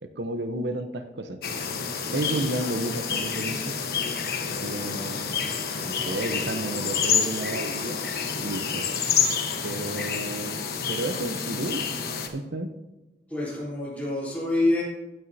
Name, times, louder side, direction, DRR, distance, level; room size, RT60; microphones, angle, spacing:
voice 1, 0.0-1.4 2.1-3.8 4.5-5.4 5.8-8.1 8.4-8.9 9.6-10.6 10.9-11.8 12.3-12.7, right 2 dB, 80° right, 7 dB, 0.8 m, -32 dB
sound 1, 1.4-12.3, left 6 dB, 60° left, 1.2 m, -28 dB
voice 2, 13.3-14.8, left 2 dB, 10° left, -6 dB, 3.6 m, -26 dB
15.5 x 9.1 x 2.8 m, 1.0 s
head